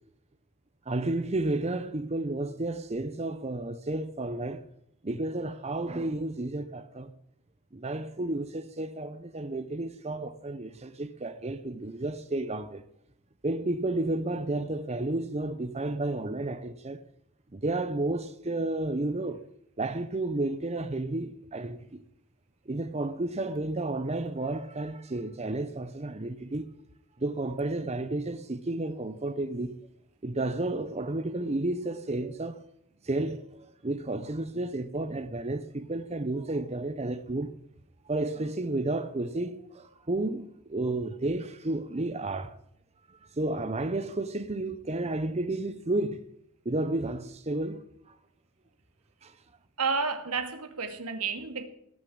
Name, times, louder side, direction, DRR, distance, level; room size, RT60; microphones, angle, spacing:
voice 1, 0.9-4.7 5.0-7.1 7.7-12.8 13.4-17.1 17.5-19.4 19.8-22.0 22.7-26.7 27.2-29.8 30.2-32.6 33.0-37.5 38.0-42.6 43.1-46.2 46.6-48.2 49.2-49.4, right 2 dB, 30° right, 0.8 m, -32 dB
voice 2, 49.8-51.7, right 5 dB, 80° right, 2.2 m, -31 dB
18.5 x 6.7 x 8.7 m
head